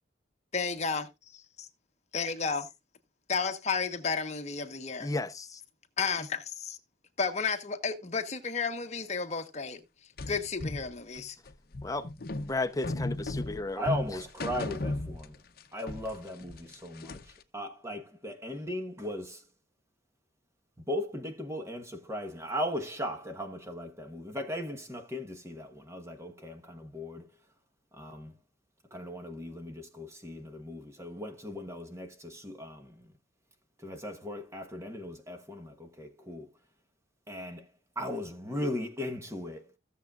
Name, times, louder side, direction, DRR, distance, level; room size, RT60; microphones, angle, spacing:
voice 1, 0.5-1.1 2.1-2.7 3.3-5.1 6.0-6.8 7.2-9.8 10.3-11.4, left 5 dB, 35° left, 1.2 m, -32 dB
voice 2, 5.0-5.6 11.8-12.1 12.3-13.9 14.1-14.2, left 2 dB, 20° left, 0.8 m, -34 dB
sound 1, 10.2-15.6 15.9-17.4, left 2 dB, 50° left, 0.8 m, -36 dB
voice 3, 13.8-15.3 15.7-17.2 17.5-19.4 20.9-27.3 28.0-28.3 28.9-32.9 33.8-36.5 37.3-37.6 38.0-39.6, left 1 dB, 15° right, 1.3 m, -37 dB
16.0 x 7.1 x 2.5 m
head